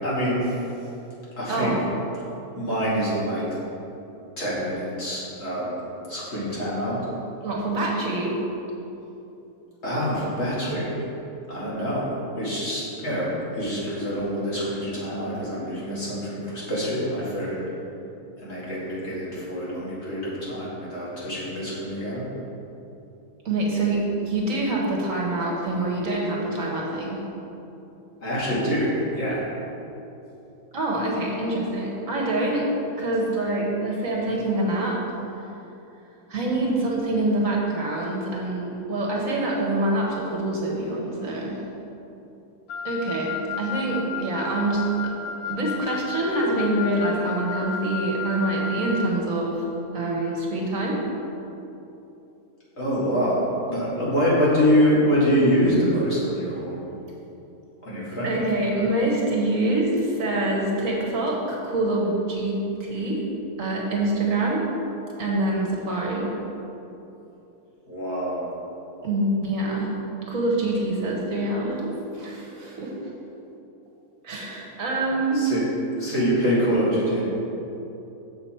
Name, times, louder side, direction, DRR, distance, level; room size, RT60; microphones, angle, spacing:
voice 1, 0.0-0.6 1.4-1.7 2.5-3.6 4.4-7.0 9.8-11.0 11.5-12.1 12.3-17.6 18.4-22.2 28.2-29.4 52.8-56.8 57.8-58.4 67.9-68.5 75.3-75.6 76.0-77.3, equal, 45° left, -8 dB, 2.3 m, -25 dB
voice 2, 1.5-1.8 7.4-8.4 23.4-27.2 30.7-35.0 36.3-41.7 42.8-45.1 45.4-49.6 49.9-51.0 58.2-63.2 63.6-64.6 65.2-66.4 69.0-69.9 70.2-71.9 72.1-73.0 74.2-75.4, right 2 dB, 60° right, -2 dB, 1.5 m, -25 dB
Wind instrument woodwind instrument, 42.7-49.1, left 5 dB, 75° left, 1.0 m, -33 dB
7.0 x 6.8 x 4.4 m, 3.0 s
omnidirectional pair, 1.6 m